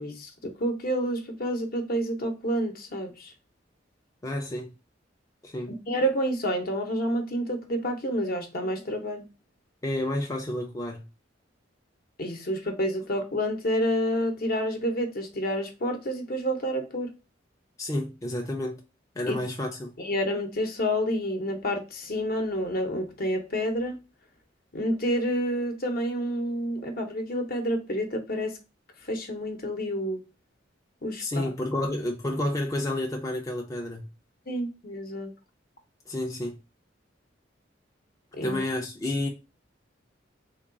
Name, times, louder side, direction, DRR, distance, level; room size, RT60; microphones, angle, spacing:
voice 1, 0.0-3.3 5.9-9.2 12.2-17.1 19.3-19.4 20.0-24.0 24.7-28.5 29.1-30.2 31.0-31.4 34.5-35.3 38.3-38.6, equal, 50° left, 0.8 m, -29 dB
voice 2, 4.2-4.7 5.4-5.7 9.8-11.0 17.8-18.8 19.2-19.9 31.2-34.1 36.1-36.6 38.4-39.3, left 1 dB, 20° left, 0.4 m, -30 dB
3.6 x 2.3 x 3.8 m
head